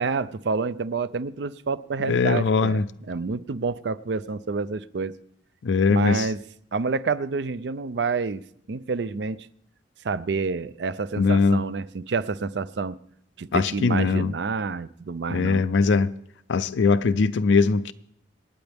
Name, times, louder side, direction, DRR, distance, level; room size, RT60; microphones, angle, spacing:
voice 1, 0.0-5.1 5.9-6.4 6.7-9.5 10.0-13.0 13.4-15.7, right 4 dB, 65° right, 0.5 m, -28 dB
voice 2, 2.1-2.8 5.6-6.3 11.2-11.6 13.5-14.3 15.3-16.1 16.5-17.9, left 4 dB, 80° left, 0.4 m, -21 dB
26.5 x 9.0 x 3.5 m
head